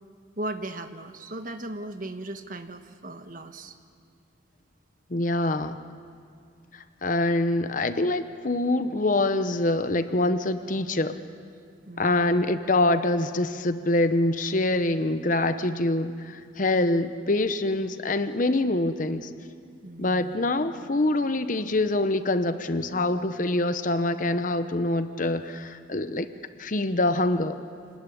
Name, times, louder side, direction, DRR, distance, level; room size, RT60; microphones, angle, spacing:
voice 1, 0.4-3.8 11.9-12.3 19.8-20.3, right 1 dB, 45° right, 8 dB, 1.3 m, -37 dB
voice 2, 5.1-5.8 6.7-11.2 12.0-19.3 20.0-26.3 26.6-27.6, left 2 dB, 45° left, 10 dB, 0.9 m, -25 dB
27.0 x 19.0 x 10.0 m, 2.3 s
head